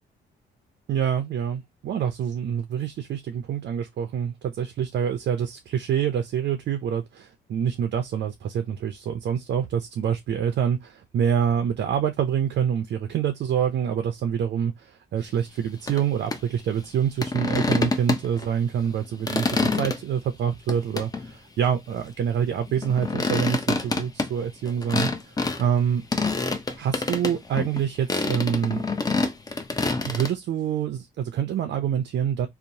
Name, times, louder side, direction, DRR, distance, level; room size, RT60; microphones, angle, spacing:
voice 1, 0.9-26.0 26.7-28.8 30.0-32.5, right 8 dB, 60° right, 0.5 m, -26 dB
sound 1, 15.9-16.0 16.3-16.4 17.2-18.5 18.9-20.0 20.7-21.3 22.7-25.6 26.1-27.8 28.1-30.3, left 3 dB, 20° left, 0.5 m, -26 dB
2.8 x 2.0 x 2.6 m
cardioid pair, 90°, 20 cm